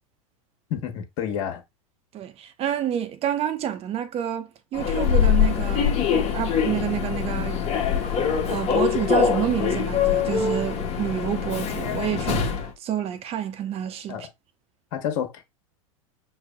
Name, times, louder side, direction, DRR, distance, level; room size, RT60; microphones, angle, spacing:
voice 1, 0.7-1.6 14.1-14.3 14.9-15.4, left 9 dB, 55° left, 1.2 m, -29 dB
voice 2, 2.1-12.4 12.8-14.3, right 10 dB, 35° right, 0.8 m, -29 dB
Human voice / Subway metro underground, 4.7-12.7, left 7 dB, 35° left, 1.1 m, -23 dB
6.0 x 2.9 x 2.3 m
hypercardioid pair, 95°, 17 cm